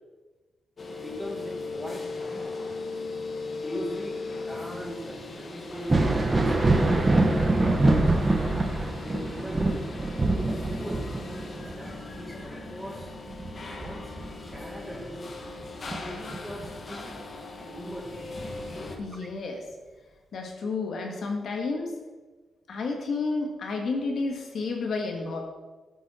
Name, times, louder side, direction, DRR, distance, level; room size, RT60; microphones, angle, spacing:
sound 1, 0.8-19.0, left 3 dB, 35° left, 1.6 m, -39 dB
voice 1, 1.0-2.6 3.6-8.2 9.0-9.9 10.5-11.2 11.8-13.2 13.7-14.2 14.4-15.3 16.0-17.2 17.5-18.1, equal, ahead, 0 dB, 1.9 m, -40 dB
Thunder, 5.7-15.1 15.4-16.7 18.2-18.3 19.1-19.3, right 2 dB, 20° right, 1.3 m, -25 dB
voice 2, 19.0-19.6 20.3-21.9 22.7-25.4, left 3 dB, 60° left, 2 dB, 1.9 m, -31 dB
13.0 x 9.2 x 4.5 m, 1.3 s
wide cardioid pair, 140°, 0 cm